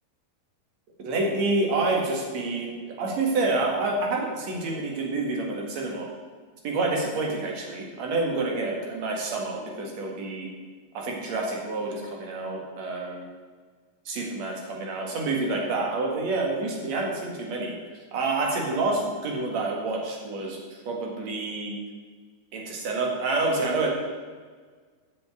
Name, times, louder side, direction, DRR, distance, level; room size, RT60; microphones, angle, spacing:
voice 1, 1.0-2.7 3.0-6.1 6.6-10.5 10.9-13.3 14.1-17.7 18.1-20.6 20.9-21.8 22.5-23.9, right 3 dB, 55° right, -1 dB, 2.9 m, -28 dB
8.7 x 6.8 x 8.3 m, 1.6 s
omnidirectional pair, 4.1 m